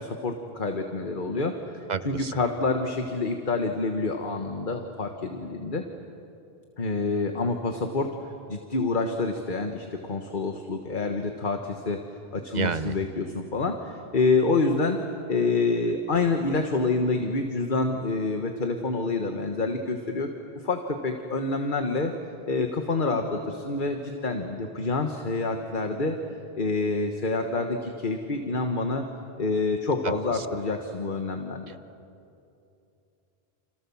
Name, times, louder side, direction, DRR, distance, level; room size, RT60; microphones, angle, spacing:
voice 1, 0.0-5.8 6.8-8.1 8.5-12.0 12.3-15.0 15.3-20.3 20.6-22.1 22.5-26.2 26.5-29.0 29.4-31.7, left 3 dB, 50° left, 5 dB, 1.5 m, -27 dB
voice 2, 1.9-2.3 12.5-13.0 30.0-30.5 31.7-31.8, right 5 dB, 45° right, 12 dB, 1.0 m, -31 dB
30.0 x 28.0 x 7.2 m, 2.7 s
omnidirectional pair, 1.1 m